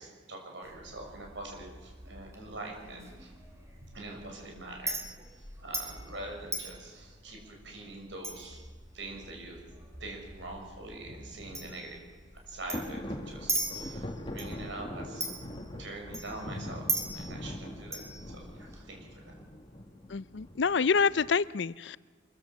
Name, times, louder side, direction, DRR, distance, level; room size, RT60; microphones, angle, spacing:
voice 1, 0.0-3.3 3.8-5.0 5.4-8.6 8.9-9.6 10.0-12.0 12.5-15.5 15.7-19.3, right 2 dB, 70° right, 6.2 m, -44 dB
Chink clink, 0.6-18.8, right 2 dB, 15° right, 3.6 m, -41 dB
sound 1, 12.7-21.3, left 1 dB, 25° left, 1.9 m, -42 dB
voice 2, 20.1-22.0, left 5 dB, 65° left, 0.5 m, -27 dB
24.5 x 15.5 x 7.3 m
head